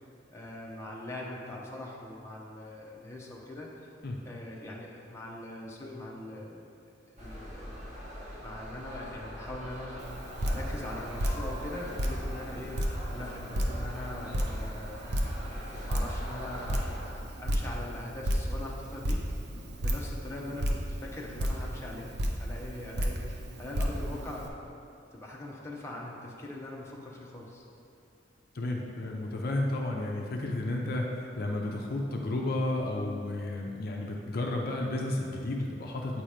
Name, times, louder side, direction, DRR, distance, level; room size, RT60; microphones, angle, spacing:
voice 1, 0.3-3.7 4.3-6.7 7.2-7.8 8.4-12.8 13.1-15.0 15.5-19.2 19.8-22.1 22.4-24.7 25.1-27.6, left 1 dB, 15° left, -4 dB, 0.8 m, -42 dB
sound 1, 7.2-17.0, equal, 40° right, 1.1 m, -43 dB
Drip, 10.0-24.5, equal, 60° right, 0.6 m, -33 dB
voice 2, 28.5-31.1 31.4-36.2, left 2 dB, 55° left, 0 dB, 0.5 m, -32 dB
8.1 x 2.9 x 5.0 m, 2.5 s
head